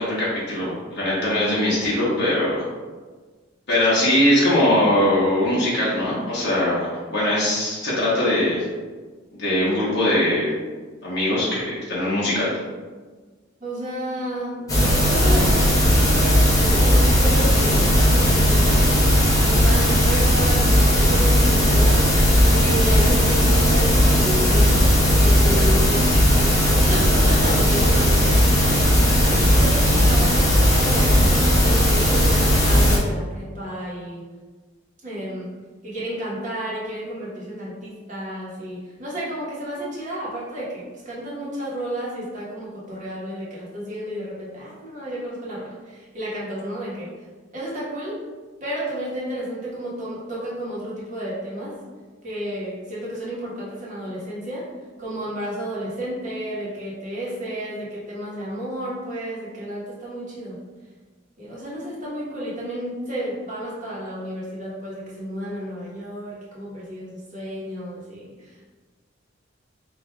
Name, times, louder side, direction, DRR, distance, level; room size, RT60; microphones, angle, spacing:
voice 1, 0.0-2.6 3.7-8.7 9.4-10.5 11.0-12.5 15.2-15.4, left 1 dB, 60° left, -8 dB, 0.9 m, -21 dB
voice 2, 13.6-15.5 15.8-18.8 19.4-22.1 22.5-24.8 25.2-26.0 26.3-29.1 29.5-34.2 35.0-35.5 35.8-47.1 47.5-48.2 48.6-51.7 52.2-54.7 55.0-60.6 61.4-68.6, right 1 dB, 40° right, -7 dB, 1.1 m, -31 dB
sound 1, 14.7-33.0, equal, 20° left, 0.6 m, -17 dB
4.6 x 2.5 x 2.2 m, 1.4 s
head